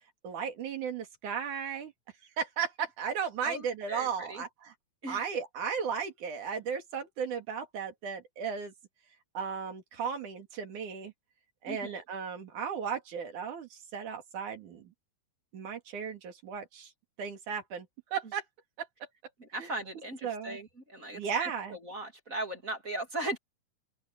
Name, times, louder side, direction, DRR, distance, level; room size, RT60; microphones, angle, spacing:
voice 1, 0.2-1.9 2.4-4.7 5.1-8.7 9.3-11.1 11.6-14.9 15.5-16.9 17.2-17.9 18.1-18.4 18.8-18.9 19.6-19.7 20.2-20.6 21.1-21.8, right 7 dB, 80° right, 4.0 m, -35 dB
voice 2, 3.4-4.4 5.0-5.2 11.7-12.0 19.4-23.4, right 1 dB, 30° right, 2.6 m, -38 dB
open air
omnidirectional pair, 3.4 m